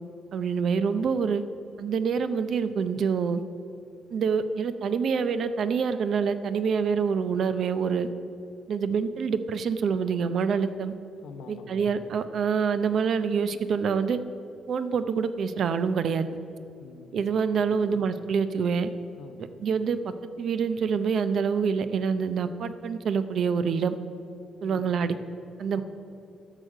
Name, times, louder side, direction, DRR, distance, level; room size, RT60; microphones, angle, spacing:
voice 1, 0.3-1.4 1.8-3.4 4.1-8.1 8.7-10.9 11.5-14.2 14.7-16.3 17.1-18.9 19.6-20.0 20.4-23.9 24.6-25.2 25.6-25.8, right 6 dB, 55° right, 11 dB, 0.6 m, -26 dB
voice 2, 11.2-12.1 16.8-17.3 17.7-18.0 19.2-19.5 24.6-25.0 25.7-25.8, left 4 dB, 90° left, 5 dB, 1.1 m, -46 dB
12.5 x 6.6 x 7.5 m, 2.7 s
cardioid pair, 145°, 0 cm